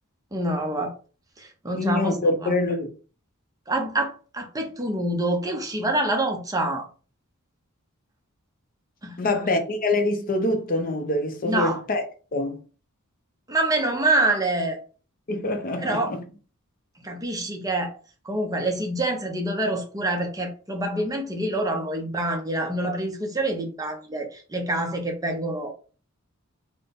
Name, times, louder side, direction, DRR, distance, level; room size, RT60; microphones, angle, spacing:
voice 1, 0.3-0.9 1.4-2.2 2.4-2.7 3.7-6.9 9.0-9.3 11.4-11.8 13.5-14.8 15.8-16.1 17.0-18.0 18.2-25.7, right 2 dB, 15° right, 0.6 m, -26 dB
voice 2, 1.7-2.9 9.2-12.0 12.3-12.6 15.3-16.2, left 2 dB, 40° left, 0.6 m, -25 dB
4.0 x 2.1 x 3.4 m
head